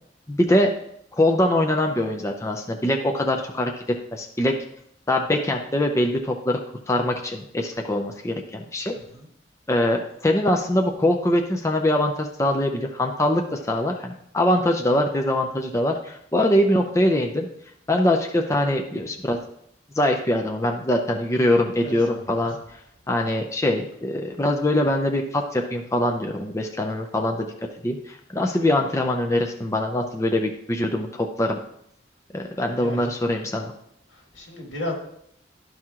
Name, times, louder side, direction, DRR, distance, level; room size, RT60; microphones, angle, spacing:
voice 1, 0.3-0.7 1.2-3.7 4.1-4.5 5.1-6.6 6.9-8.9 9.7-17.5 17.9-19.4 20.0-22.6 23.1-27.5 27.8-31.6 32.3-33.7, left 1 dB, 15° left, 2 dB, 0.5 m, -23 dB
voice 2, 8.9-9.3 21.8-22.4 32.8-33.1 34.1-34.9, left 1 dB, 85° left, 0 dB, 1.9 m, -35 dB
12.0 x 4.6 x 3.7 m, 0.73 s
head